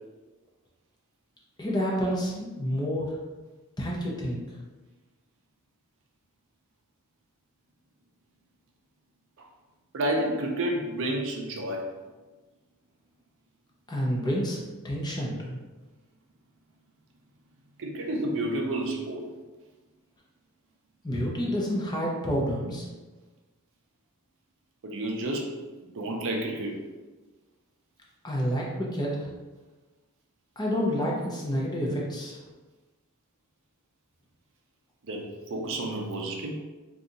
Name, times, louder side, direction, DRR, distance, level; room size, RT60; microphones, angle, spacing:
voice 1, 1.6-3.2 3.8-4.4 13.9-15.6 21.0-22.9 28.2-29.3 30.6-32.4, equal, 20° left, -3 dB, 0.6 m, -29 dB
voice 2, 9.9-11.9 17.8-19.3 24.8-25.6 25.9-26.8 35.1-36.6, right 1 dB, 60° right, 2 dB, 0.5 m, -30 dB
2.7 x 2.3 x 3.9 m, 1.2 s
head